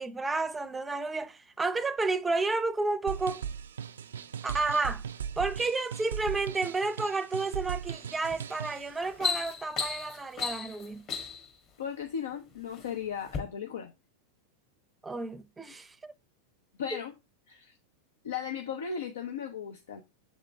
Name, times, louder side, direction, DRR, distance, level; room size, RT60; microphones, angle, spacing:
voice 1, 0.0-3.4 4.4-5.0 5.4-11.1 15.0-16.1, right 3 dB, 15° right, 0.5 m, -31 dB
sound 1, 3.1-8.9, right 7 dB, 85° right, 0.3 m, -38 dB
sound 2, 8.3-8.5 8.9-11.5 12.3-12.9 13.3-13.4, left 6 dB, 40° left, 1.5 m, -34 dB
voice 2, 11.8-13.9 16.8-17.1 17.5-17.7 18.2-20.0, left 7 dB, 80° left, 0.7 m, -36 dB
7.3 x 3.7 x 3.5 m
hypercardioid pair, 105°, 0 cm